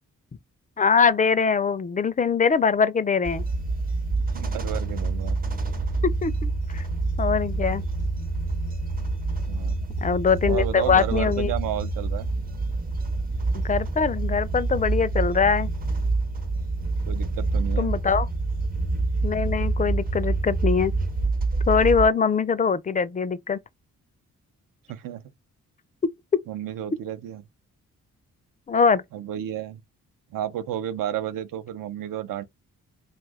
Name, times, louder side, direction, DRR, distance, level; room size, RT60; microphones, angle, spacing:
voice 1, 0.8-3.4 6.2-6.8 7.2-7.8 10.0-11.5 13.5-15.7 17.8-18.3 19.2-20.9 21.7-23.6 28.7-29.0, left 6 dB, 25° left, 0.4 m, -22 dB
sound 1, 3.2-22.1, right 3 dB, 25° right, 0.5 m, -27 dB
voice 2, 4.2-5.4 9.5-9.9 10.4-12.3 17.1-17.9 24.9-25.2 26.5-27.4 29.1-29.8 30.3-32.5, right 11 dB, 75° right, 0.5 m, -32 dB
2.6 x 2.3 x 3.4 m
cardioid pair, 60°, 33 cm